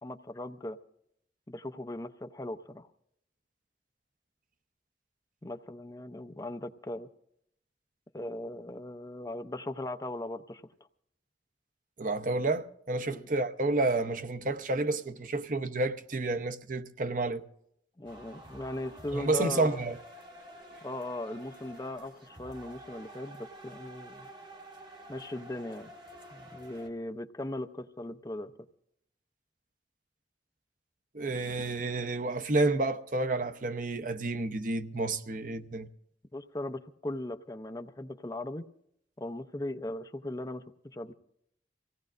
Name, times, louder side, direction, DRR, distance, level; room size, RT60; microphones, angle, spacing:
voice 1, 0.0-0.8 1.5-2.9 5.4-7.1 8.1-10.6 13.0-13.3 18.0-19.8 20.8-24.3 25.1-25.9 26.3-28.5 36.3-38.6 39.2-41.1, left 1 dB, 20° left, 0.6 m, -38 dB
voice 2, 12.0-17.4 19.1-20.0 31.1-35.9, right 2 dB, 50° right, 0.8 m, -30 dB
sound 1, 18.0-26.9, right 1 dB, 25° right, 1.8 m, -49 dB
25.5 x 17.0 x 2.5 m
head